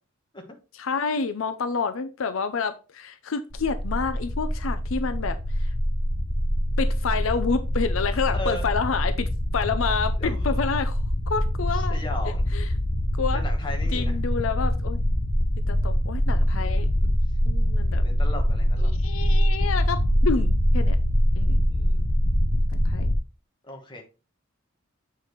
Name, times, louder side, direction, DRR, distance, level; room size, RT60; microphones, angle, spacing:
voice 1, 0.7-5.7 6.8-11.0 11.3-12.0 12.5-12.7 13.2-13.4 13.9-15.0 15.7-16.9 17.5-18.0 18.8-21.0 21.4-21.6 22.7-23.1, left 5 dB, 80° left, 9 dB, 0.5 m, -28 dB
sound 1, 3.5-23.2, equal, 45° left, 0.9 m, -24 dB
voice 2, 8.3-8.7 10.2-10.4 11.9-12.5 13.3-14.2 16.5-17.1 18.0-18.9 21.7-22.0 23.7-24.0, left 1 dB, 25° left, 2 dB, 1.2 m, -36 dB
7.6 x 4.6 x 3.1 m, 0.32 s
head